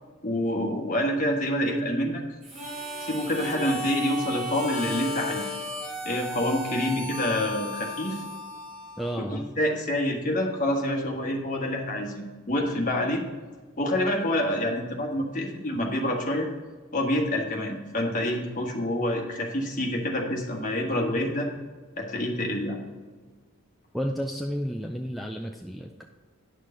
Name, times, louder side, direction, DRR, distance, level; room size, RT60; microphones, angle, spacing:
voice 1, 0.2-2.2 3.0-5.5 6.0-8.2 9.2-13.2 13.8-16.5 16.9-21.5 22.0-22.8, left 1 dB, 40° left, 0 dB, 1.5 m, -27 dB
Harmonica, 2.4-9.3, left 1 dB, 35° right, 2.6 m, -35 dB
voice 2, 9.0-9.5 23.9-26.0, equal, ahead, 1 dB, 0.3 m, -32 dB
10.5 x 6.5 x 3.8 m, 1.4 s
head